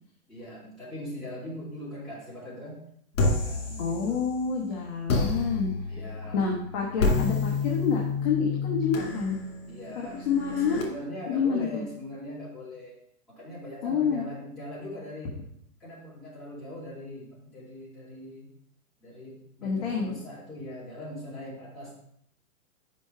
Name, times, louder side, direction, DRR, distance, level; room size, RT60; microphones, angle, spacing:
voice 1, 0.3-2.8 3.4-4.2 5.9-6.4 9.7-10.3 10.7-12.9 13.3-15.4 15.8-18.5 19.0-22.0, left 1 dB, ahead, -12 dB, 2.3 m, -41 dB
sound 1, 3.1-4.5 5.1-10.8, left 3 dB, 60° left, 2.4 m, -29 dB
voice 2, 3.8-5.7 6.3-9.4 10.1-10.9 11.3-11.8 13.8-14.2 19.6-20.1, left 6 dB, 30° left, -2 dB, 0.9 m, -28 dB
5.6 x 5.2 x 4.7 m, 0.71 s
hypercardioid pair, 160°, 43 cm